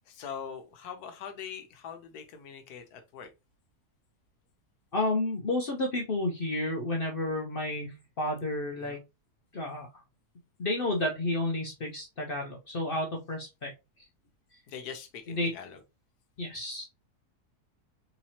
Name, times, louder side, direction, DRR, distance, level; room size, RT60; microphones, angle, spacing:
voice 1, 0.1-3.3 8.8-9.0 14.7-15.8, left 7 dB, 75° left, 1.2 m, -42 dB
voice 2, 4.9-9.0 9.5-9.9 10.6-13.7 15.3-15.5 16.4-16.8, left 2 dB, 55° left, 0.6 m, -31 dB
4.0 x 2.9 x 2.8 m
omnidirectional pair, 1.7 m